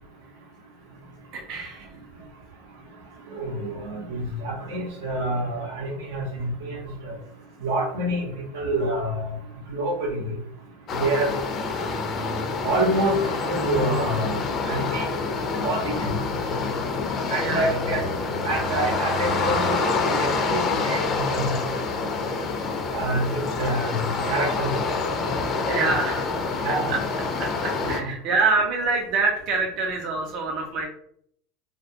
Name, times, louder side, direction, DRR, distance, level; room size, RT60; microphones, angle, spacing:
voice 1, 1.3-1.9 17.4-17.6 25.7-26.3 26.6-27.0 27.4-30.9, right 3 dB, 55° right, 1 dB, 0.4 m, -26 dB
voice 2, 3.3-7.1 7.6-8.3 8.5-9.3 9.7-10.4 11.0-11.4 12.6-14.4 14.7-15.1 15.6-16.2 17.3-18.0 18.4-21.6 22.9-24.0 24.3-24.7 26.6-26.9, right 1 dB, 85° right, 0 dB, 0.7 m, -27 dB
sound 1, 10.9-28.0, left 4 dB, 35° left, 0.4 m, -27 dB
sound 2, 11.4-21.3, equal, 40° right, 0.9 m, -38 dB
2.3 x 2.1 x 2.7 m, 0.67 s
supercardioid pair, 110°, 0 cm